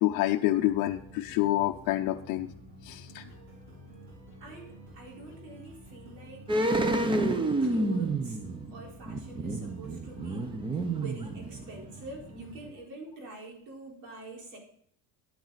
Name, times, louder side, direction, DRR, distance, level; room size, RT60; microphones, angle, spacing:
voice 1, 0.0-2.5 2.8-3.2, left 15 dB, 50° left, 3 dB, 0.6 m, -27 dB
sound 1, 0.5-12.7, equal, 45° right, 4.3 m, -50 dB
voice 2, 4.4-8.4 8.7-10.5 10.9-14.6, right 2 dB, 90° right, -1 dB, 4.2 m, -46 dB
sound 2, 6.5-11.9 12.2-12.3, right 2 dB, 15° right, 0.5 m, -29 dB
10.5 x 9.2 x 4.0 m, 0.64 s
cardioid pair, 160°, 40 cm